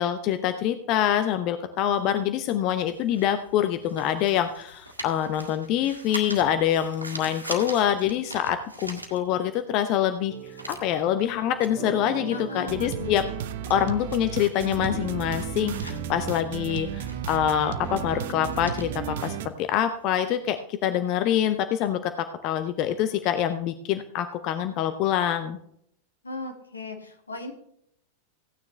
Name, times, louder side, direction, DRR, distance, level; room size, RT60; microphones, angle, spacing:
voice 1, 0.0-10.3 10.7-13.2 13.7-25.6, left 10 dB, 40° left, 9 dB, 0.8 m, -25 dB
sound 1, 1.9-9.7 10.0-20.1, right 2 dB, 85° right, 1.7 m, -43 dB
sound 2, 10.3-19.5, right 5 dB, 35° right, 2.2 m, -40 dB
voice 2, 12.3-13.2 26.2-27.5, left 3 dB, 80° left, 3 dB, 2.2 m, -37 dB
sound 3, 12.7-19.5, right 9 dB, 55° right, 0.8 m, -34 dB
16.0 x 9.5 x 3.3 m, 0.70 s
figure-of-eight pair, 90°, 0 cm